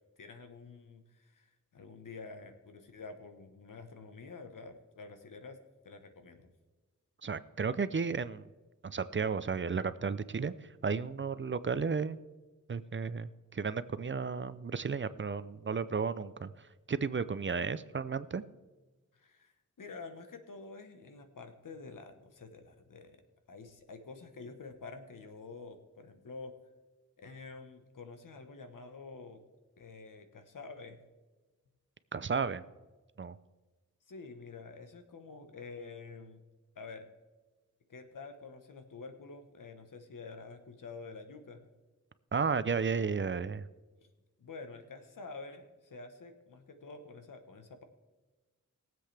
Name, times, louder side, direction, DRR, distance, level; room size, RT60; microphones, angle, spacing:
voice 1, 0.2-6.5 19.1-23.2 23.5-26.5 27.2-29.4 29.8-31.0 34.1-36.4 36.7-37.1 37.9-41.6 44.4-47.8, left 4 dB, 90° left, 7 dB, 1.2 m, -48 dB
voice 2, 7.2-8.5 8.8-10.5 10.8-12.2 12.7-16.5 16.9-18.4 32.1-32.6 33.2-33.3 42.3-43.7, right 5 dB, 40° right, 14 dB, 0.5 m, -33 dB
21.5 x 7.7 x 3.4 m, 1.2 s
wide cardioid pair, 80°, 31 cm